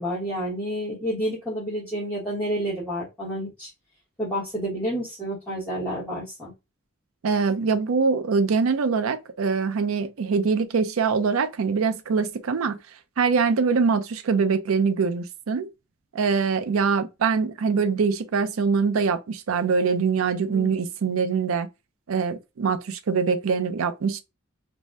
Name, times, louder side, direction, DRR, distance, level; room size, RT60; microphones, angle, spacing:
voice 1, 0.0-3.7 4.2-6.5 20.5-20.7, equal, 5° left, 1.0 m, -29 dB
voice 2, 7.2-12.8 13.2-15.7 16.1-21.7 22.1-24.2, right 5 dB, 80° right, 0.5 m, -23 dB
2.6 x 2.1 x 3.3 m
head